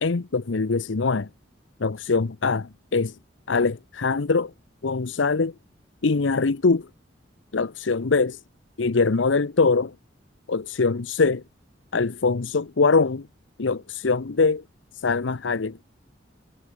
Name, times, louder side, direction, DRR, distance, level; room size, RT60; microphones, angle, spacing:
voice 1, 0.0-1.3 1.8-3.2 3.5-4.5 4.8-5.5 6.0-6.9 7.5-8.4 8.8-10.0 10.5-11.4 11.9-13.3 13.6-14.6 14.9-15.8, left 4 dB, 80° left, 0.7 m, -23 dB
head